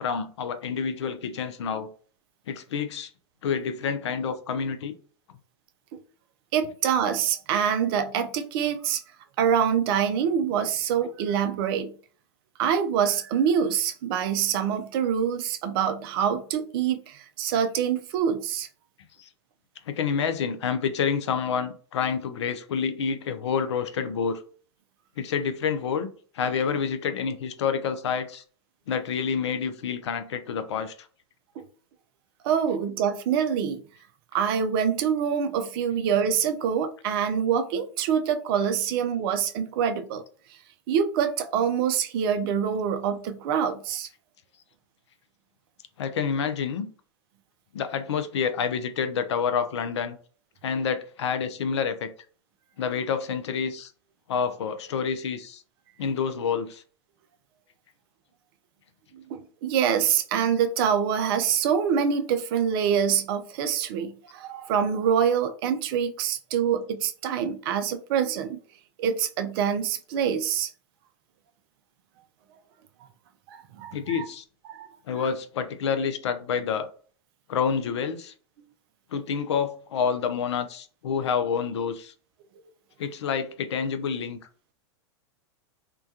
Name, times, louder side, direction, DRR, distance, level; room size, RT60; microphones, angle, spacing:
voice 1, 0.0-1.9 2.5-3.1 3.4-4.9 19.2-19.3 19.9-24.4 25.2-28.4 28.9-30.9 46.0-46.9 47.7-50.2 50.6-52.1 52.8-53.9 54.3-55.6 56.0-56.8 73.9-74.4 75.1-76.9 77.5-78.3 79.1-82.1 83.0-84.4, left 6 dB, 75° left, 0.4 m, -28 dB
voice 2, 6.5-9.0 9.4-11.9 12.6-18.7 31.6-31.7 32.4-33.8 34.3-40.2 40.5-40.6 40.9-44.1 59.1-68.6 69.0-70.7 73.5-74.3 74.7-74.9, right 8 dB, 55° right, 0.4 m, -25 dB
2.2 x 2.2 x 2.6 m
hypercardioid pair, 100°, 15 cm